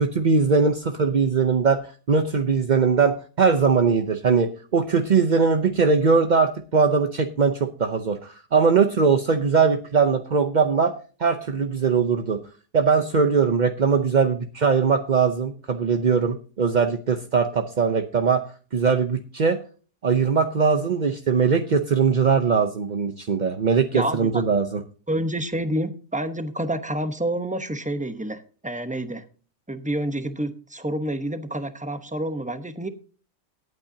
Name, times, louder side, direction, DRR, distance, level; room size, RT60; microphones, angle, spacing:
voice 1, 0.0-1.8 2.1-10.9 11.2-12.4 12.7-18.4 18.7-19.6 20.0-24.8, right 5 dB, 50° right, 8 dB, 0.5 m, -21 dB
voice 2, 23.9-24.4 25.1-29.2 29.7-32.9, right 1 dB, 5° right, 9 dB, 0.6 m, -28 dB
18.5 x 8.8 x 2.7 m, 0.37 s
omnidirectional pair, 1.8 m